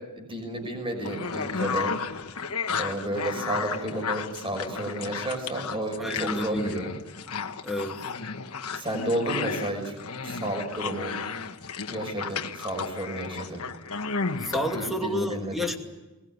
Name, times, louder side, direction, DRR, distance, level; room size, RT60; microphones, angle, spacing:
voice 1, 0.2-1.9 2.8-6.9 8.7-9.9 10.2-11.1 11.9-13.6 14.7-15.6, right 1 dB, 25° right, 3 dB, 6.0 m, -32 dB
sound 1, 1.0-14.9, left 5 dB, 75° left, 1.4 m, -33 dB
voice 2, 6.0-6.8 7.6-8.1 14.4-15.8, left 1 dB, ahead, 3 dB, 2.5 m, -30 dB
21.5 x 21.0 x 9.7 m, 1.1 s
head